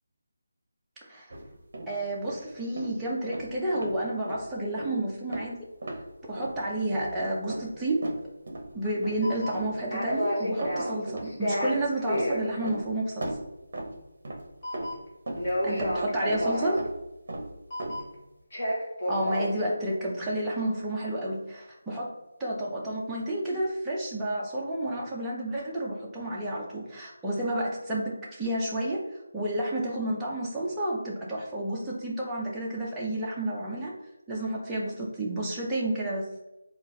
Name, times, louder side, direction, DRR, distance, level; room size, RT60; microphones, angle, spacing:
sound 1, 1.3-2.0 2.2-2.4 2.8-3.0 3.3-4.0 4.2-4.5 4.8-4.9 5.3-5.5 5.8-6.0 6.3-6.6 6.9-7.2 7.5-8.7 9.0-9.3 9.5-10.3 10.6-11.3 11.6-12.9 13.2-14.5 14.7-16.0 16.3-16.5 16.8-17.0 17.3-18.1, right 1 dB, 40° right, 0.8 m, -37 dB
voice 1, 1.9-5.6 6.3-8.0 8.7-13.3 15.6-16.8 19.1-22.1 22.4-29.0 29.3-33.9 34.3-36.3, right 1 dB, 5° right, -7 dB, 0.5 m, -30 dB
sound 2, 8.9-9.0 9.2-9.7 9.9-11.0 11.2-12.4 14.6-15.1 15.4-16.7 17.7-18.1 18.5-19.6 23.5-23.6, equal, 25° left, 1.2 m, -30 dB
3.8 x 2.4 x 4.0 m, 0.96 s
figure-of-eight pair, 175°, 0 cm